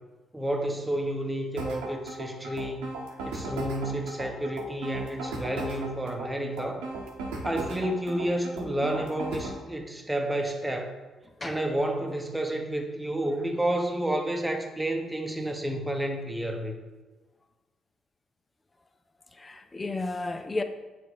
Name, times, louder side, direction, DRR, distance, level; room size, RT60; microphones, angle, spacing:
voice 1, 0.3-2.9 3.2-6.8 7.4-11.0 11.4-16.7, right 1 dB, 10° right, 1.1 m, -30 dB
sound 1, 1.6-9.6, right 2 dB, 80° right, 1.0 m, -36 dB
voice 2, 19.3-20.6, left 2 dB, 25° left, 0.6 m, -33 dB
9.2 x 3.4 x 3.0 m
hypercardioid pair, 45°, 0 cm